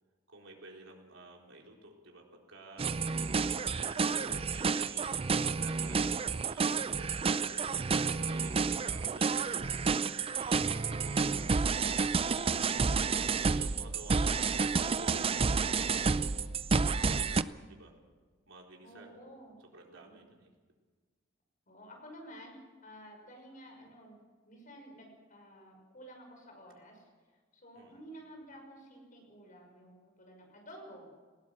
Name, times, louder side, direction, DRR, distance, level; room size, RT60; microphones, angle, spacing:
voice 1, 0.3-2.8 3.7-5.1 5.5-7.7 8.0-9.8 10.3-13.1 13.4-16.2 16.8-17.9 18.5-19.1 19.6-20.5 27.7-28.0, right 2 dB, 80° right, 0 dB, 4.2 m, -53 dB
sound 1, 2.8-17.4, right 5 dB, 30° right, 0.5 m, -30 dB
voice 2, 18.8-19.6 19.8-20.3 21.7-22.6 22.8-27.1 27.5-31.1, equal, 45° left, 2 dB, 6.1 m, -52 dB
19.5 x 17.5 x 7.6 m, 1.5 s
head